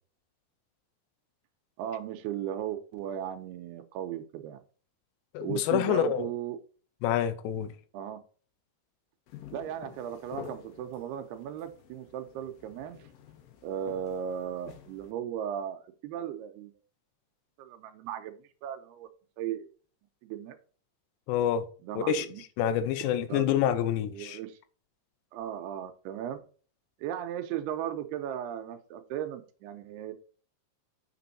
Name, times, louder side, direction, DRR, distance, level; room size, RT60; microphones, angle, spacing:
voice 1, 1.8-4.6 5.4-6.6 7.9-8.2 9.5-13.0 13.6-16.7 17.6-19.1 19.4-19.7 20.2-20.6 21.8-22.4 23.0-23.5 24.1-24.6 25.3-26.4 27.0-30.1, right 10 dB, 85° right, 2.7 m, -36 dB
voice 2, 5.3-6.3 7.0-7.7 21.3-21.7 22.0-22.3 22.6-24.4, left 9 dB, 85° left, 2.9 m, -27 dB
sound 1, 9.3-15.1, left 7 dB, 70° left, 2.5 m, -49 dB
7.6 x 6.1 x 4.1 m
omnidirectional pair, 4.8 m